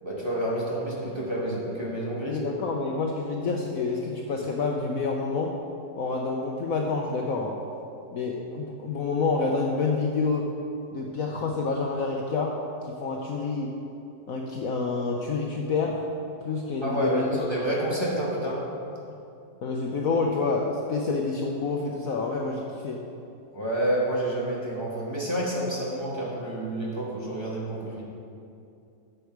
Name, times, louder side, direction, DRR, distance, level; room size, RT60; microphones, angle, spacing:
voice 1, 0.0-2.4 16.8-18.6 23.5-28.0, right 1 dB, 15° right, -6 dB, 1.8 m, -29 dB
voice 2, 2.2-5.5 6.0-7.5 8.1-10.5 10.9-12.5 12.9-13.7 14.3-16.0 16.4-17.2 17.6-17.7 19.6-23.0, left 4 dB, 60° left, 0 dB, 1.1 m, -28 dB
11.5 x 6.8 x 4.7 m, 2.6 s
omnidirectional pair, 1.9 m